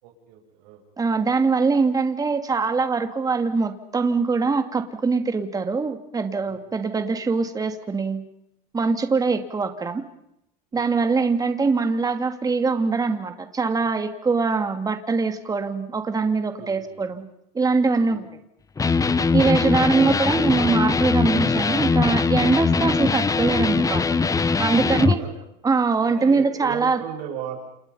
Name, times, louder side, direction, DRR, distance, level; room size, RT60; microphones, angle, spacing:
voice 1, 0.0-0.8 6.4-6.6 10.7-11.0 16.6-17.0 18.0-18.2 19.1-19.2 25.0-25.3 26.2-27.6, right 8 dB, 75° right, 0 dB, 7.5 m, -37 dB
voice 2, 1.0-8.2 8.7-10.0 10.7-17.2 17.5-18.2 19.3-24.2 24.6-25.2 25.6-27.0, right 4 dB, 15° right, 7 dB, 2.6 m, -23 dB
Electric guitar, 18.8-25.2, left 4 dB, 15° left, 1.1 m, -21 dB
29.5 x 28.5 x 5.7 m, 0.77 s
supercardioid pair, 120°, 21 cm